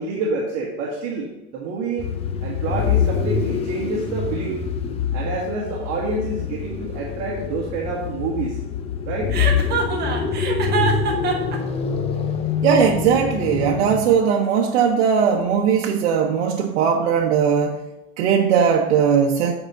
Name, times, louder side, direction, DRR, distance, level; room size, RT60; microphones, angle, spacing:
voice 1, 0.0-2.1 2.4-4.6 5.1-8.6 9.1-9.4, right 3 dB, 50° right, -2 dB, 1.7 m, -27 dB
sound 1, 2.0-14.2, left 6 dB, 20° left, 0.5 m, -25 dB
Chuckle chortle, 9.3-11.6, right 5 dB, 30° right, 1.3 m, -24 dB
voice 2, 12.6-17.8 18.2-19.5, right 7 dB, 90° right, 1 dB, 0.9 m, -19 dB
8.9 x 4.9 x 5.4 m, 0.97 s
supercardioid pair, 155°, 33 cm